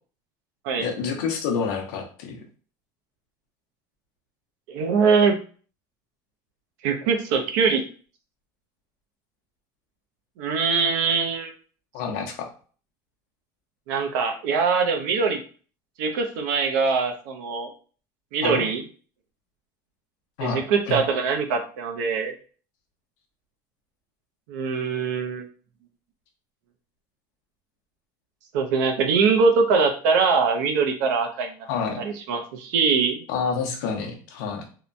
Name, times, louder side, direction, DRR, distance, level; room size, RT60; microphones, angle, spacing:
voice 1, 0.8-2.4 11.9-12.5 18.4-18.7 20.4-21.0 31.7-32.0 33.3-34.6, left 5 dB, 80° left, 2 dB, 0.7 m, -28 dB
voice 2, 4.7-5.3 6.8-7.8 10.4-11.5 13.9-15.4 16.0-17.7 18.3-18.8 20.4-22.3 24.5-25.5 28.5-31.5 32.0-33.2, right 5 dB, 85° right, 5 dB, 0.6 m, -22 dB
2.8 x 2.2 x 2.5 m, 0.40 s
cardioid pair, 175°, 9 cm